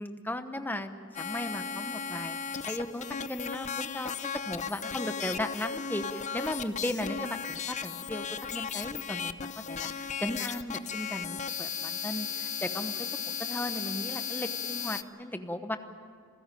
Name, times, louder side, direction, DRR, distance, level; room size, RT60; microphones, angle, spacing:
voice 1, 0.0-2.4 2.7-8.2 8.5-15.8, left 1 dB, 10° left, 8 dB, 1.0 m, -36 dB
sound 1, 1.1-15.0, left 7 dB, 35° left, 0.7 m, -36 dB
27.5 x 15.5 x 9.1 m, 2.1 s
head